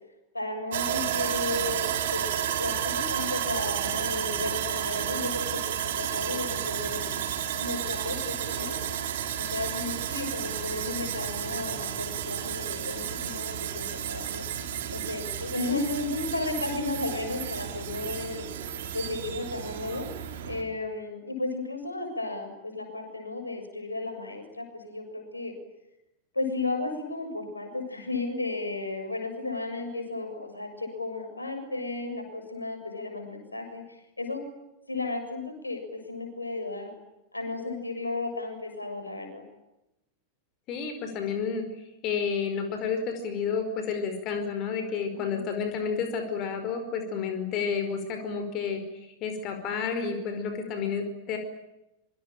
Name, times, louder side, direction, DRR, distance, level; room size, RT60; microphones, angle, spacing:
voice 1, 0.3-2.2 2.6-7.1 7.6-8.8 9.4-14.4 14.9-18.5 18.9-20.1 20.5-25.5 26.3-33.8 34.2-34.4 34.9-36.9 37.3-39.4 45.1-45.4, left 2 dB, 80° left, 5 dB, 7.0 m, -34 dB
Sawing, 0.7-20.6, right 9 dB, 60° right, 3.9 m, -32 dB
voice 2, 40.7-41.6 42.0-48.8 49.2-51.4, left 6 dB, 40° left, 7 dB, 5.1 m, -30 dB
26.0 x 25.0 x 9.1 m, 0.90 s
figure-of-eight pair, 90°, 0 cm